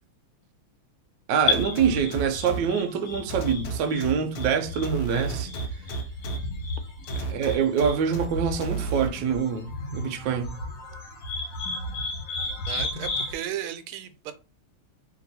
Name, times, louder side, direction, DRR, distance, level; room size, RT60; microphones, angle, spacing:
sound 1, 1.3-13.3, left 3 dB, 50° left, 1.4 m, -33 dB
voice 1, 1.3-5.5 7.3-10.6, right 7 dB, 70° right, 1.2 m, -25 dB
sound 2, 1.5-2.6 3.3-4.5 4.8-6.4 7.1-8.3 8.6-9.1, right 5 dB, 80° left, 1.6 m, -31 dB
voice 2, 12.7-14.3, right 11 dB, 90° right, 1.5 m, -34 dB
3.2 x 3.0 x 4.0 m
omnidirectional pair, 2.2 m